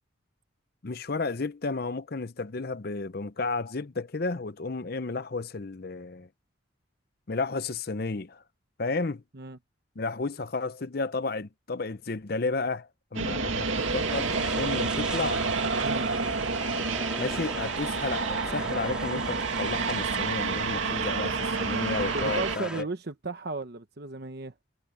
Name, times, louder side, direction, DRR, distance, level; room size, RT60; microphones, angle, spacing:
voice 1, 0.8-6.3 7.3-8.4 8.8-9.2 10.0-15.4 17.2-22.9, left 3 dB, 50° left, 0.7 m, -32 dB
sound 1, 13.1-22.6, right 4 dB, 75° right, 2.4 m, -29 dB
sound 2, 13.4-22.8, right 1 dB, 5° right, 3.1 m, -41 dB
voice 2, 22.1-24.5, right 3 dB, 50° right, 1.0 m, -35 dB
head